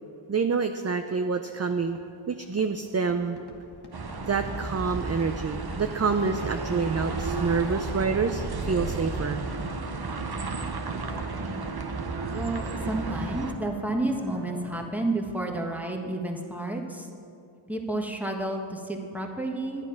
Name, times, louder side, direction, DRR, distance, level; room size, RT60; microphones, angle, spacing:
voice 1, 0.3-2.0 2.3-3.4 4.2-9.4 10.4-10.5 10.8-10.9, right 5 dB, 35° right, 7 dB, 0.5 m, -27 dB
Fireworks, 1.7-15.2, left 2 dB, 55° left, 1.5 m, -49 dB
sound 1, 3.9-13.5, right 3 dB, 50° right, 0.9 m, -33 dB
sound 2, 5.9-14.8, right 2 dB, 85° right, 1.3 m, -45 dB
voice 2, 12.3-17.1 17.7-19.9, right 2 dB, 5° right, 1 dB, 1.4 m, -31 dB
10.5 x 9.8 x 5.8 m, 2.5 s
wide cardioid pair, 45°, 49 cm